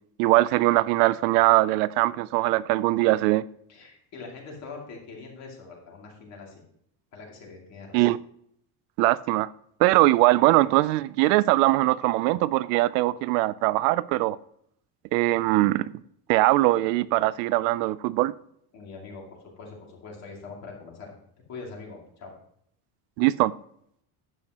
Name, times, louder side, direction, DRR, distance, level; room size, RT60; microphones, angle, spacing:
voice 1, 0.2-3.4 7.9-8.2 9.0-9.5 9.8-14.4 15.1-15.9 16.3-18.3 23.2-23.5, right 18 dB, 80° right, 0.5 m, -21 dB
voice 2, 3.7-6.6 7.1-8.0 18.7-21.1 21.5-22.3, left 4 dB, 35° left, 2.5 m, -43 dB
10.5 x 8.1 x 2.9 m
cardioid pair, 175°, 46 cm